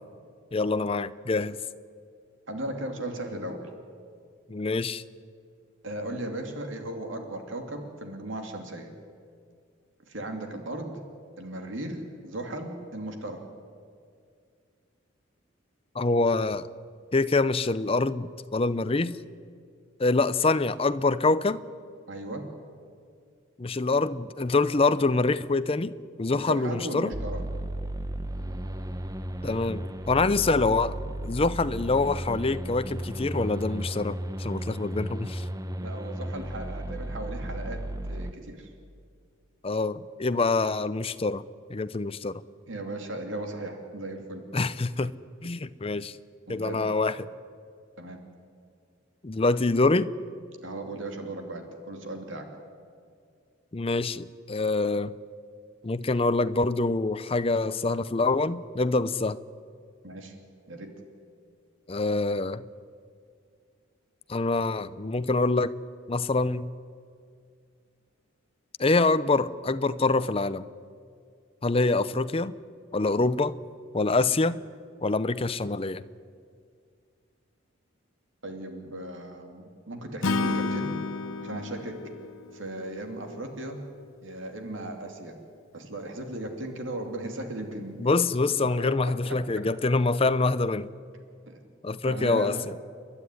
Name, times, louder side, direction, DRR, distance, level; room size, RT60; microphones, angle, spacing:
voice 1, 0.5-1.6 4.5-5.0 15.9-16.7 17.1-19.2 20.0-21.6 23.6-25.9 26.2-27.1 29.4-31.0 31.2-35.4 39.6-41.4 41.7-42.4 44.5-45.1 45.4-46.2 46.5-47.3 49.2-50.1 53.7-55.1 55.8-59.4 61.9-62.6 64.3-65.7 66.1-66.7 68.8-70.7 71.6-72.5 72.9-73.5 73.9-74.6 75.0-76.0 88.0-90.9 91.8-92.6, left 3 dB, 30° left, 14 dB, 0.6 m, -25 dB
voice 2, 2.5-3.7 5.8-8.9 10.1-11.0 11.4-13.4 22.1-22.4 26.3-27.4 35.8-38.7 42.7-44.4 46.5-46.8 48.0-48.2 50.6-52.5 60.0-60.3 60.7-60.9 78.4-80.9 81.4-82.0 82.5-83.8 84.2-85.4 85.7-88.1 88.8-89.4 91.5-91.6 92.0-92.6, right 1 dB, 65° right, 4 dB, 2.8 m, -36 dB
sound 1, 27.1-38.3, right 1 dB, 15° right, 0.8 m, -34 dB
Acoustic guitar / Strum, 80.2-83.5, left 3 dB, 85° left, 0.8 m, -31 dB
30.0 x 11.5 x 9.9 m, 2.2 s
head